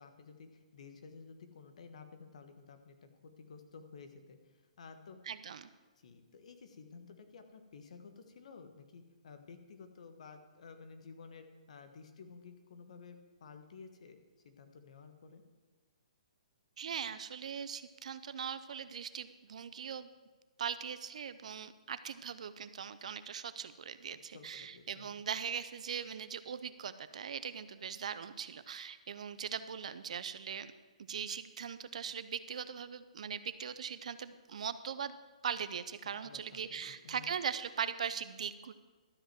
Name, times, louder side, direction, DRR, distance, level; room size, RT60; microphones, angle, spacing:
voice 1, 0.0-5.2 6.0-14.2 14.4-15.4 24.3-25.1 36.2-37.3, left 5 dB, 65° left, 7 dB, 1.3 m, -53 dB
voice 2, 5.3-5.7 16.8-20.1 20.6-30.7 31.1-38.7, right 7 dB, 65° right, 13 dB, 0.6 m, -40 dB
12.5 x 5.4 x 7.5 m, 1.3 s
hypercardioid pair, 155°, 4 cm